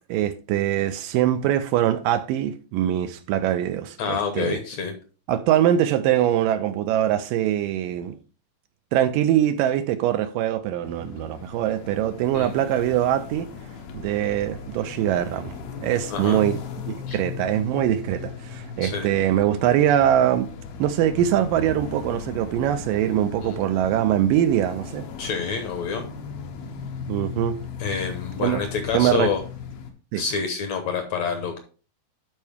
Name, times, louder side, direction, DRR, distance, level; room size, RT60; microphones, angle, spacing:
voice 1, 0.1-4.6 5.3-8.2 8.9-13.5 13.9-15.5 15.8-16.6 16.9-20.5 20.8-25.1 27.1-27.6 28.4-28.6 28.9-29.3 30.1-30.2, right 11 dB, 80° right, 2.0 m, -22 dB
voice 2, 4.0-4.9 12.3-12.5 16.1-16.4 17.1-17.2 18.8-19.1 23.4-23.6 25.2-26.0 27.8-29.4 30.1-31.6, left 6 dB, 65° left, 1.9 m, -27 dB
sound 1, 10.8-29.9, left 5 dB, 85° left, 3.0 m, -37 dB
12.0 x 4.6 x 3.5 m
omnidirectional pair, 4.2 m